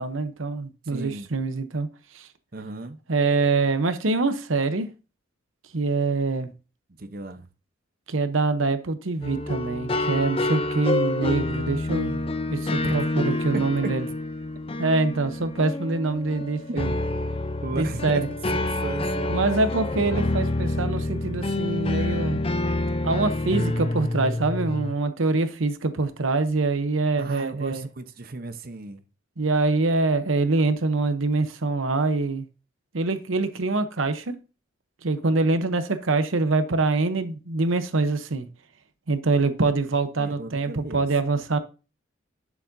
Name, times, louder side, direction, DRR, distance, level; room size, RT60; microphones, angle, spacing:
voice 1, 0.0-1.9 2.1-2.3 3.1-4.9 5.7-6.5 8.1-14.1 14.8-16.9 17.7-18.3 19.3-22.4 23.0-27.9 29.4-32.5 32.9-34.3 35.0-38.5 39.1-41.6, right 3 dB, 85° right, 0.9 m, -24 dB
voice 2, 0.8-1.3 2.5-3.0 7.0-7.5 12.8-13.0 13.5-14.0 16.7-16.8 17.6-19.4 27.2-29.0 40.2-41.0, right 2 dB, 50° right, 0.9 m, -34 dB
sound 1, 9.2-24.9, left 2 dB, 30° left, 0.5 m, -27 dB
11.5 x 7.1 x 2.7 m
head